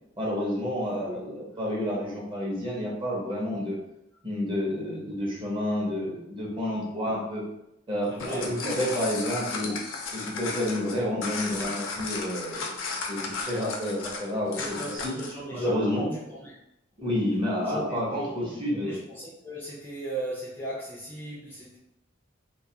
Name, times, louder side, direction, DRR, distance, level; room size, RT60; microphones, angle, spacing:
voice 1, 0.2-3.8 4.2-7.4 7.9-9.8 10.1-15.1 15.5-16.1 17.0-19.0, left 1 dB, 25° right, -4 dB, 0.7 m, -30 dB
sound 1, 8.0-15.4, left 4 dB, 70° left, 0.5 m, -35 dB
voice 2, 8.1-8.5 14.6-16.5 17.6-21.8, right 1 dB, 10° left, -6 dB, 0.4 m, -37 dB
2.3 x 2.2 x 2.7 m, 0.84 s
head